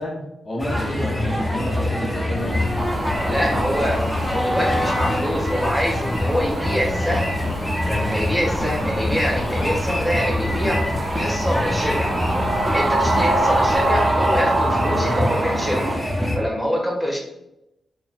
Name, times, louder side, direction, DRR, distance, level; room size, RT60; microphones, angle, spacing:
voice 1, 0.0-2.6 14.9-15.3, equal, 45° left, -2 dB, 1.2 m, -30 dB
sound 1, 0.6-16.4, left 1 dB, 10° left, 1.0 m, -24 dB
sound 2, 2.3-13.9, left 1 dB, 75° left, 1.0 m, -36 dB
sound 3, 2.8-16.0, right 2 dB, 45° right, 0.5 m, -26 dB
voice 2, 3.2-7.3 7.8-10.8 11.1-12.1 12.7-15.8 16.3-17.2, equal, 5° right, -2 dB, 1.3 m, -25 dB
3.8 x 2.3 x 4.2 m, 0.89 s
supercardioid pair, 45°, 0 cm